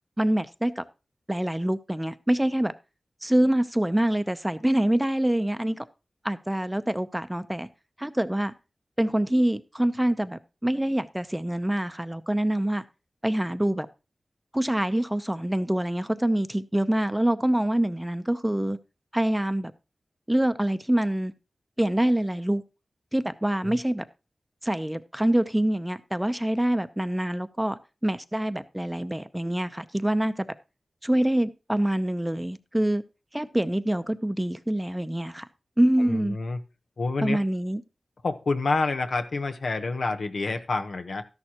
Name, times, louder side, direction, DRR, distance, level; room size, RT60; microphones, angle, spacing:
voice 1, 0.2-0.8 1.3-2.7 3.2-5.8 6.2-7.7 8.0-8.5 9.0-12.8 13.2-13.9 14.5-18.8 19.1-19.7 20.3-21.3 21.8-22.6 23.1-24.0 24.6-30.5 31.0-33.0 33.3-35.4 35.8-36.4 37.2-37.8, right 1 dB, 10° right, 0.6 m, -25 dB
voice 2, 36.0-36.6 37.0-37.4 38.2-41.2, left 3 dB, 80° left, 1.0 m, -28 dB
13.0 x 11.0 x 2.9 m
wide cardioid pair, 75°, 0 cm